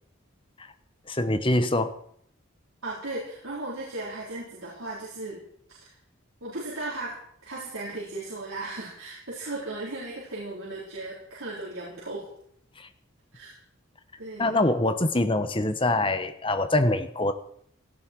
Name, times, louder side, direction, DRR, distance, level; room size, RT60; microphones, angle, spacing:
voice 1, 1.1-1.9 12.8-12.9 14.4-17.3, left 2 dB, 25° left, 10 dB, 1.1 m, -24 dB
voice 2, 2.8-5.4 5.7-5.9 6.4-12.3 13.3-13.6 14.2-14.6, right 2 dB, 80° right, -6 dB, 4.6 m, -36 dB
17.5 x 15.0 x 4.7 m, 0.68 s
head